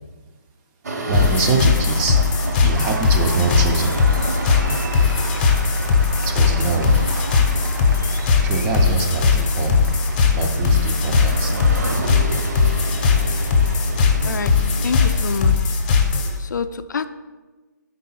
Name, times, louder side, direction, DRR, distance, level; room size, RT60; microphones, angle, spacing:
sound 1, 0.8-15.5, right 2 dB, 60° right, 0.7 m, -32 dB
sound 2, 1.1-16.4, left 5 dB, 30° left, 0.6 m, -19 dB
voice 1, 1.1-2.2 2.6-4.0 6.2-7.0 8.4-9.8 10.3-11.6 11.9-12.1, right 4 dB, 15° right, 3 dB, 0.3 m, -24 dB
Applause, 2.7-12.8, right 2 dB, 90° right, 0.8 m, -37 dB
voice 2, 14.8-15.5 16.5-16.7 16.9-17.1, left 6 dB, 70° left, 12 dB, 0.4 m, -25 dB
4.7 x 3.6 x 5.5 m, 1.3 s
hypercardioid pair, 160°, 10 cm